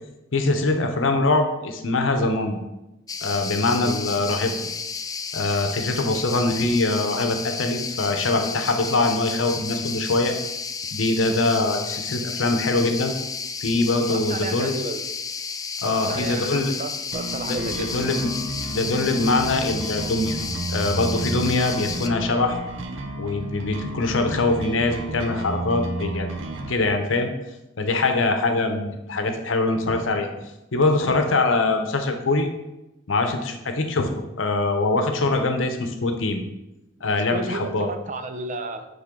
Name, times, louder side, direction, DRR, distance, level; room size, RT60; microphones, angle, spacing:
voice 1, 0.3-2.6 3.2-4.6 5.3-10.3 10.9-13.1 13.6-14.7 15.8-16.7 17.4-18.3 18.6-20.4 20.7-22.6 23.2-26.3 26.7-27.3 27.8-30.3 30.7-32.5 33.1-36.4 37.0-37.9, left 2 dB, 85° left, 5 dB, 0.8 m, -23 dB
sound 1, 3.1-22.1, left 5 dB, 20° left, 0.3 m, -32 dB
voice 2, 14.1-15.0 15.8-17.9 30.4-30.5 37.3-38.9, right 2 dB, 40° right, 8 dB, 0.6 m, -32 dB
sound 2, 17.1-26.7, right 2 dB, 85° right, 0.7 m, -32 dB
9.8 x 3.7 x 3.7 m, 0.96 s
head